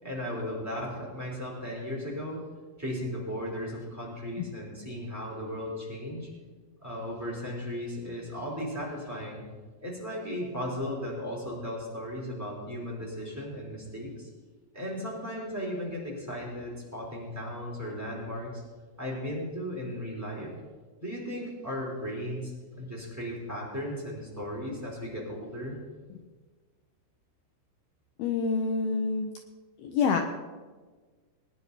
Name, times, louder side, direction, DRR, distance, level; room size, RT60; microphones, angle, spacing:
voice 1, 0.0-2.4 2.8-6.3 6.8-9.4 9.8-14.3 14.7-18.6 19.0-20.5 21.0-25.8, equal, 5° right, -4 dB, 3.3 m, -36 dB
voice 2, 28.2-29.3 29.8-30.2, left 5 dB, 85° left, 5 dB, 2.0 m, -27 dB
21.0 x 10.0 x 4.1 m, 1.4 s
omnidirectional pair, 5.2 m